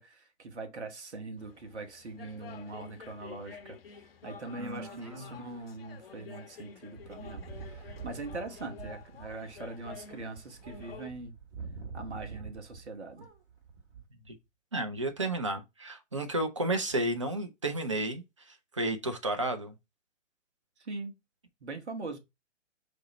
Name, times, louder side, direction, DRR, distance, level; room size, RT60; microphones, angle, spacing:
voice 1, 0.0-3.8 4.2-11.3 11.9-13.3 20.8-21.2 21.6-22.2, right 3 dB, 60° right, 1.1 m, -42 dB
sound 1, 1.4-11.1, left 7 dB, 50° left, 0.6 m, -50 dB
voice 2, 4.6-5.4 14.3-14.4 14.7-19.7, right 2 dB, 25° right, 0.4 m, -32 dB
sound 2, 7.0-12.9 13.1-14.1, right 5 dB, 45° right, 1.4 m, -46 dB
5.0 x 2.0 x 4.1 m
figure-of-eight pair, 125°, 38 cm